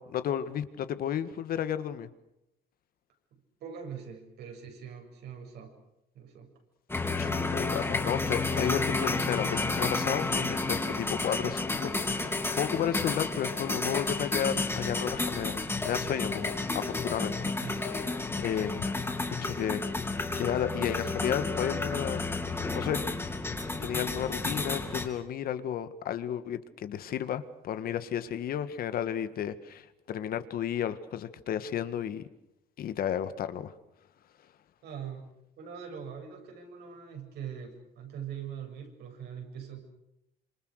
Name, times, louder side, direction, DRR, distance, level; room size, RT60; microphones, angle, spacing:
voice 1, 0.0-2.1 7.2-17.9 18.4-18.8 19.4-22.3 22.7-23.0 23.8-32.3 32.8-33.7, left 9 dB, 60° left, 12 dB, 1.7 m, -33 dB
voice 2, 3.3-5.7 6.1-6.5 8.7-8.9 17.6-17.9 34.8-35.3 35.6-39.8, right 8 dB, 75° right, 3 dB, 7.4 m, -42 dB
sound 1, 6.9-25.1, left 3 dB, 15° left, 3.6 m, -31 dB
27.0 x 26.0 x 6.6 m, 0.85 s
cardioid pair, 110°, 17 cm